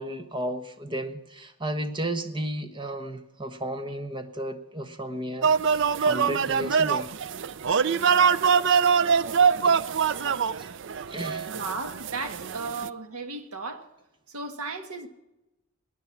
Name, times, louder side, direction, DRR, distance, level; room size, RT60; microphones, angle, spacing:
voice 1, 0.0-7.1 9.6-9.8 10.6-10.7 11.1-11.5, right 1 dB, 20° right, 1.1 m, -34 dB
sound 1, 5.4-12.9, right 6 dB, 55° right, 0.4 m, -23 dB
voice 2, 11.5-13.8 14.3-15.1, right 3 dB, 80° right, 1.6 m, -35 dB
19.0 x 10.0 x 7.3 m
head